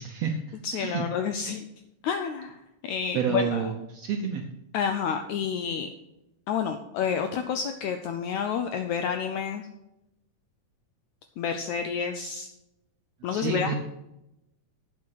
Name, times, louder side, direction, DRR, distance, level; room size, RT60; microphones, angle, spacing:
voice 1, 0.0-1.0 3.1-4.4 13.3-13.7, right 7 dB, 75° right, 3 dB, 1.5 m, -30 dB
voice 2, 0.6-1.6 2.0-3.7 4.7-5.9 6.5-9.7 11.4-12.5 13.2-13.7, left 7 dB, 80° left, 7 dB, 1.7 m, -29 dB
8.6 x 7.5 x 6.4 m, 0.88 s
omnidirectional pair, 4.0 m